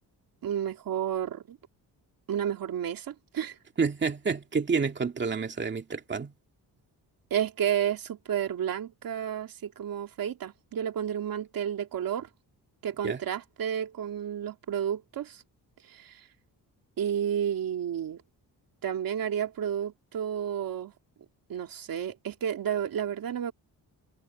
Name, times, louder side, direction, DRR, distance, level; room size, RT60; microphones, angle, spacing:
voice 1, 0.4-1.6 2.3-3.6 7.3-12.3 12.8-15.4 15.9-16.2 17.0-18.2 18.8-20.9 21.5-23.5, right 9 dB, 60° right, 2.6 m, -31 dB
voice 2, 3.8-6.3 13.0-13.2, right 5 dB, 30° right, 2.2 m, -29 dB
cardioid pair, 135°, 39 cm